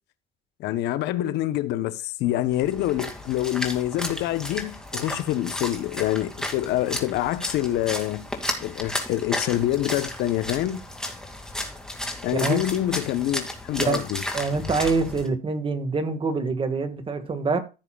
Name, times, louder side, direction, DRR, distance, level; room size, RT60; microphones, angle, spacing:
voice 1, 0.6-8.3 8.6-10.8 12.2-14.2, left 13 dB, 85° left, 0.9 m, -26 dB
Splash splatter, 2.5-15.3, left 1 dB, 5° left, 2.3 m, -33 dB
voice 2, 14.3-17.6, right 4 dB, 30° right, 1.8 m, -25 dB
14.5 x 7.1 x 2.4 m
cardioid pair, 110°, 17 cm